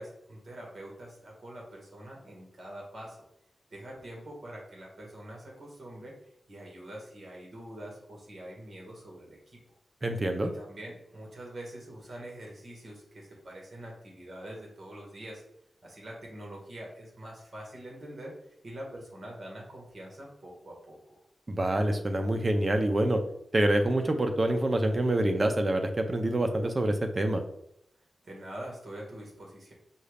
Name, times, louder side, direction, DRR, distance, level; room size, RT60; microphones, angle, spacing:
voice 1, 0.0-3.2 3.7-6.1 6.5-9.6 10.5-15.4 15.8-18.3 18.6-21.1 28.2-29.7, right 1 dB, 55° right, -2 dB, 1.7 m, -44 dB
voice 2, 10.0-10.5 21.5-23.2 23.5-27.4, right 1 dB, 35° right, 5 dB, 0.6 m, -26 dB
5.4 x 2.4 x 3.4 m, 0.75 s
wide cardioid pair, 85°, 0 cm